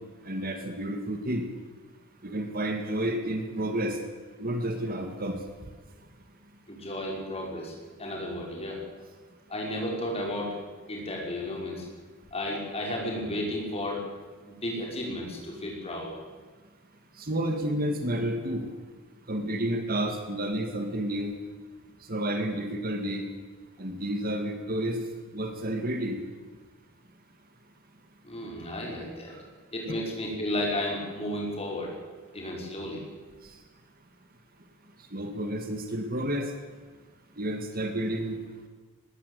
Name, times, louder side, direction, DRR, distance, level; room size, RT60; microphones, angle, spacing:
voice 1, 0.2-1.4 2.2-4.0 4.4-5.4 17.2-18.6 19.3-21.3 22.1-23.3 23.8-25.0 25.3-26.2 29.8-29.9 35.1-36.5 37.4-38.4, right 1 dB, 40° right, 6 dB, 2.1 m, -30 dB
voice 2, 6.7-7.7 8.0-8.8 9.5-10.6 10.9-11.9 12.3-14.0 14.5-16.1 28.2-29.3 29.7-31.9 32.3-33.0, left 1 dB, 25° left, -1 dB, 5.8 m, -33 dB
20.0 x 18.5 x 8.4 m, 1.4 s
head